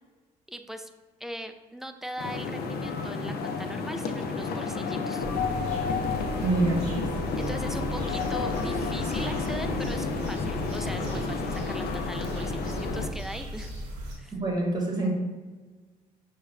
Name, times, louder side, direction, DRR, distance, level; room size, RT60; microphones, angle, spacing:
voice 1, 0.5-0.9 1.2-5.3 7.4-13.7 14.2-14.3, equal, ahead, 7 dB, 0.3 m, -40 dB
sound 1, 2.2-13.1, left 4 dB, 50° left, 0.5 m, -31 dB
sound 2, 5.2-14.1, right 1 dB, 80° right, 0.8 m, -36 dB
voice 2, 6.4-7.1 14.3-15.2, right 2 dB, 20° right, -1 dB, 1.2 m, -26 dB
6.1 x 2.2 x 2.4 m, 1.3 s
hypercardioid pair, 50°, 20 cm